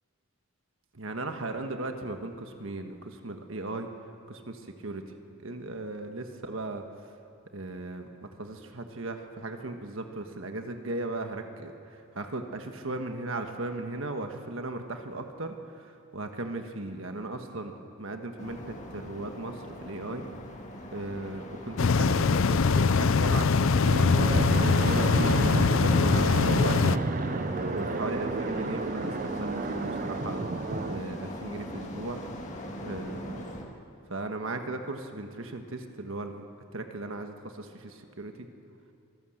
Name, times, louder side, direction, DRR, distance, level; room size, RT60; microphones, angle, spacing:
voice 1, 0.9-3.9 4.3-5.0 5.4-6.8 7.5-20.2 20.9-26.9 27.7-32.2 32.8-33.5 34.1-36.4 36.7-38.5, right 2 dB, 65° right, 5 dB, 1.4 m, -37 dB
sound 1, 18.4-33.6, equal, 35° left, 2.0 m, -41 dB
sound 2, 21.8-27.0, left 4 dB, 65° left, 0.5 m, -23 dB
Fixed-wing aircraft airplane, 23.9-31.0, right 3 dB, 40° right, 0.6 m, -31 dB
25.0 x 14.5 x 7.8 m, 2.5 s
head